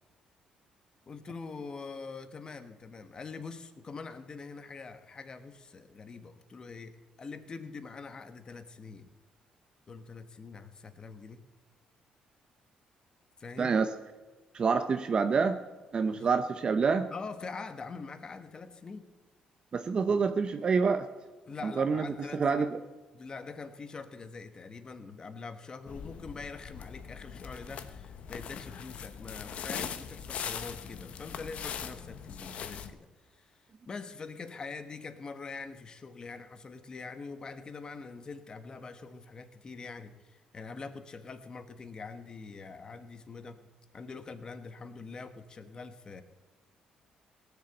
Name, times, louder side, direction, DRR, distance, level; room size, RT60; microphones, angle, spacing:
voice 1, 1.1-9.1 9.9-11.4 13.4-13.8 16.1-16.3 17.1-19.1 21.5-22.7 23.1-33.1 33.3-43.7 43.9-46.2, left 4 dB, 35° left, 9 dB, 1.2 m, -44 dB
voice 2, 13.6-13.9 14.5-15.6 15.9-17.1 19.7-21.1 21.6-22.1 22.3-22.8, right 5 dB, 40° right, 8 dB, 0.7 m, -27 dB
sound 1, 25.9-32.9, left 7 dB, 60° left, 1.0 m, -41 dB
17.5 x 7.0 x 7.9 m, 1.3 s
cardioid pair, 110°, 2 cm